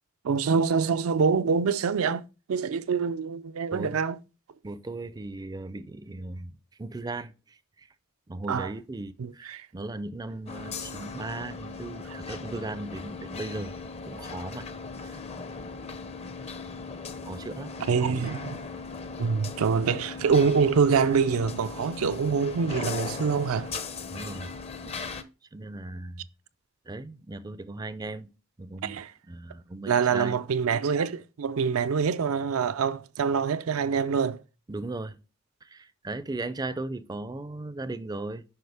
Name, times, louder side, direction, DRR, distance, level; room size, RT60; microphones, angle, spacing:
voice 1, 0.2-2.2 2.5-4.2 8.5-8.7 9.2-9.7 17.9-18.6 19.2-23.7 28.8-29.1 29.9-34.4, right 5 dB, 80° right, 0.4 m, -25 dB
voice 2, 4.6-6.5 6.8-7.3 7.8-7.9 8.3-13.7 14.1-14.7 15.0-15.2 17.2-17.7 24.1-24.5 25.5-26.2 26.9-28.3 28.6-29.0 29.3-30.4 34.7-35.2 35.6-38.4, right 2 dB, 20° right, 0.4 m, -37 dB
sound 1, 10.5-25.2, left 4 dB, 30° left, 0.6 m, -38 dB
7.8 x 5.4 x 3.4 m
head